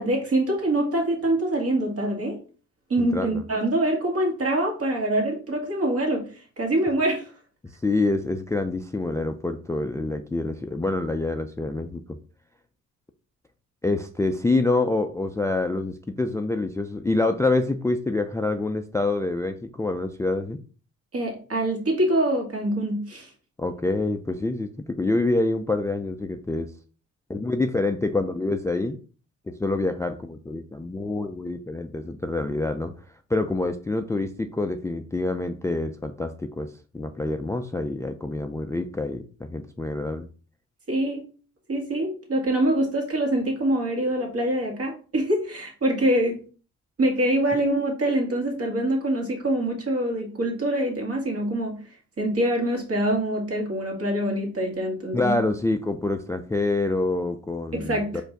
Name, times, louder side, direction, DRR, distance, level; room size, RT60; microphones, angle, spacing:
voice 1, 0.0-2.4 2.9-7.3 21.1-23.3 40.9-41.2 41.7-46.4 47.0-51.8 52.2-55.3 57.7-58.1, right 1 dB, 50° right, 2.0 m, -25 dB
voice 2, 3.0-3.3 7.8-12.0 13.8-20.6 23.6-26.7 27.3-29.0 29.6-32.9 33.3-40.3 55.1-58.2, left 2 dB, 10° left, 0.4 m, -26 dB
4.4 x 2.6 x 4.5 m
cardioid pair, 90°, 30 cm